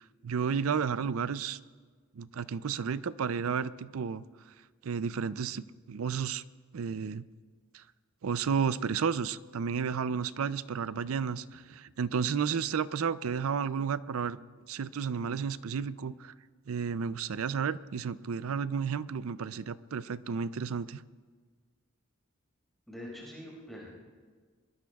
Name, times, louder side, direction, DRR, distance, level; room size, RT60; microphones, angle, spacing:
voice 1, 0.2-1.6 2.2-4.2 4.8-6.4 6.7-7.2 7.7-7.8 8.2-14.4 14.7-16.3 16.7-21.0, right 6 dB, 80° right, 16 dB, 0.5 m, -32 dB
voice 2, 22.9-23.9, left 1 dB, ahead, -5 dB, 4.9 m, -44 dB
24.0 x 21.0 x 2.3 m, 1.5 s
head